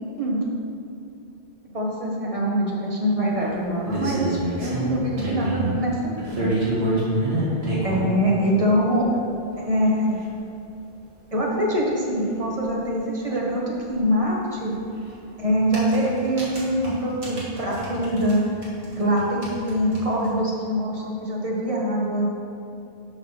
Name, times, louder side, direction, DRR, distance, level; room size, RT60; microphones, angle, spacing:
voice 1, 1.7-6.5 7.8-9.1 9.6-10.3 11.3-14.7 15.4-18.4 19.0-22.3, equal, 30° right, -3 dB, 1.2 m, -24 dB
sound 1, 3.4-5.7 6.2-8.1 9.0-9.1 9.5-9.6 9.9-10.0 10.2-10.3 12.3-12.4 12.6-12.7 14.7-14.8 15.5-18.4 18.6-20.3, right 1 dB, 65° right, 1.9 m, -27 dB
5.9 x 5.0 x 5.6 m, 2.8 s
omnidirectional pair, 1.1 m